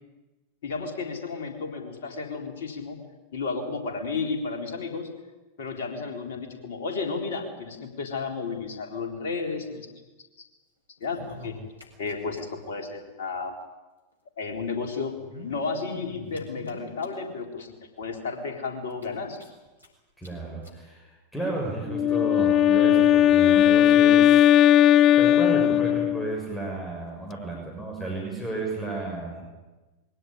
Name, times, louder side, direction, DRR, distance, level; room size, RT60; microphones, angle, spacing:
voice 1, 0.6-3.0 3.3-5.1 5.6-9.9 11.0-11.5 12.0-13.5 14.4-15.1 15.4-17.7 18.0-19.4, left 4 dB, 60° left, 3 dB, 3.9 m, -32 dB
sound 1, 11.0-12.4 12.7-12.8 13.0-13.1 14.1-14.2 15.1-17.4 18.0-18.1 18.4-18.5 18.9-19.9 20.2-20.3 20.6-20.8 21.6-21.7, left 2 dB, 85° right, 5.4 m, -44 dB
voice 2, 20.2-24.5 25.2-29.4, right 2 dB, 5° left, -1 dB, 6.5 m, -33 dB
Wind instrument woodwind instrument, 21.9-26.4, left 11 dB, 35° left, 0.7 m, -18 dB
22.0 x 17.5 x 9.9 m, 1.2 s
figure-of-eight pair, 90°, 0 cm